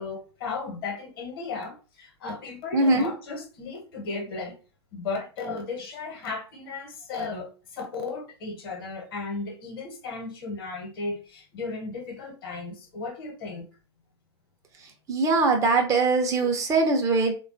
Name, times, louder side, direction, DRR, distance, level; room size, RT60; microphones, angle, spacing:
voice 1, 0.0-4.6 4.9-13.7, left 4 dB, 55° left, 1.0 m, -35 dB
voice 2, 2.7-3.1 15.1-17.3, right 3 dB, 25° right, 0.6 m, -22 dB
3.5 x 2.2 x 2.5 m
figure-of-eight pair, 95°, 14 cm